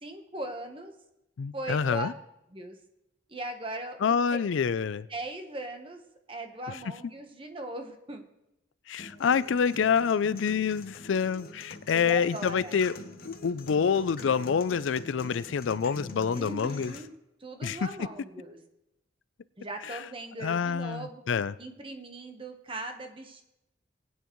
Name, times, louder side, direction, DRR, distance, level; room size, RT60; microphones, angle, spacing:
voice 1, 0.0-0.9 1.5-2.1 2.5-2.8 3.3-4.4 5.1-6.0 6.3-8.2 11.9-12.8 16.3-17.1 17.4-18.6 19.6-21.2 21.6-23.4, right 2 dB, 25° right, 5 dB, 1.1 m, -39 dB
voice 2, 1.4-2.1 4.0-5.1 8.9-12.9 13.2-16.9 17.6-17.9 19.9-20.0 20.4-21.5, left 6 dB, 80° left, 16 dB, 0.4 m, -27 dB
sound 1, 9.0-17.0, left 2 dB, 50° left, 1.0 m, -45 dB
19.0 x 9.3 x 3.1 m, 0.89 s
head